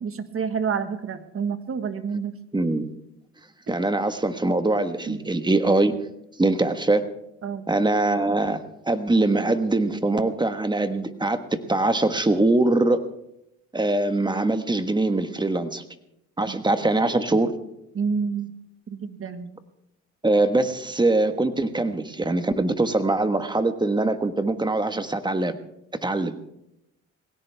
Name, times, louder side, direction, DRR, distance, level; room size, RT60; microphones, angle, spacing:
voice 1, 0.0-2.3 5.1-5.2 7.4-7.7 16.5-16.6 17.9-18.5 18.9-19.5, right 6 dB, 45° right, 10 dB, 1.5 m, -28 dB
voice 2, 2.5-2.9 3.7-6.0 6.4-7.0 7.7-8.6 8.9-13.0 13.7-15.8 16.4-17.5 20.2-25.6 26.0-26.3, right 2 dB, 15° right, 9 dB, 1.4 m, -22 dB
19.5 x 17.0 x 3.5 m, 0.82 s
cardioid pair, 90°, 30 cm